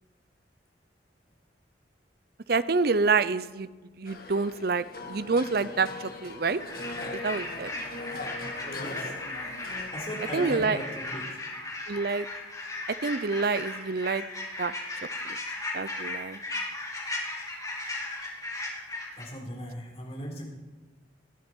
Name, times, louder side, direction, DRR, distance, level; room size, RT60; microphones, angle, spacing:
voice 1, 2.5-3.7 4.0-6.6 7.2-7.7 10.3-10.8 11.9-12.3 13.0-14.2 14.6-14.7 15.2-15.4 15.7-16.4, right 4 dB, 55° right, 15 dB, 0.6 m, -27 dB
sound 1, 4.1-9.9, left 2 dB, 55° left, 2.0 m, -40 dB
sound 2, 6.6-19.2, left 2 dB, 20° left, 2.9 m, -36 dB
voice 2, 8.8-9.1 9.9-11.2 19.2-20.4, equal, 35° left, -2 dB, 4.1 m, -37 dB
19.5 x 12.5 x 4.6 m, 1.3 s
head